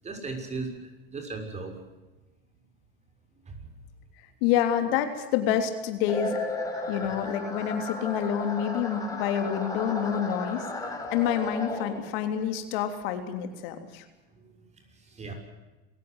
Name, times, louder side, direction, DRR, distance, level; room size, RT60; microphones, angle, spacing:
voice 1, 0.0-1.8 3.5-3.7 14.3-15.3, right 3 dB, 25° right, 5 dB, 6.3 m, -38 dB
voice 2, 4.4-6.4 6.9-10.7 11.1-14.0, left 9 dB, 70° left, 7 dB, 3.4 m, -28 dB
sound 1, 6.1-12.3, left 2 dB, 10° left, 5.6 m, -34 dB
26.5 x 16.0 x 8.1 m, 1.2 s
supercardioid pair, 120°, 29 cm